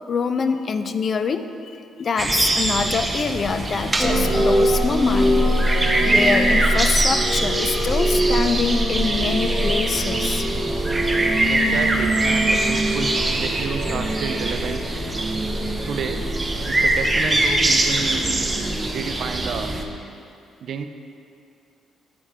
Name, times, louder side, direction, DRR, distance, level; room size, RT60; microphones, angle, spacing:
voice 1, 0.1-5.4 6.0-10.5, left 5 dB, 45° left, 9 dB, 0.3 m, -25 dB
sound 1, 2.2-19.8, right 2 dB, 20° right, 0.6 m, -23 dB
sound 2, 4.0-19.9, equal, 5° left, 1.4 m, -24 dB
voice 2, 11.5-14.9 15.8-16.3 16.7-18.5 18.8-19.7 20.6-20.8, right 6 dB, 65° right, 8 dB, 0.4 m, -31 dB
8.7 x 4.7 x 3.3 m, 2.6 s
cardioid pair, 90°, 0 cm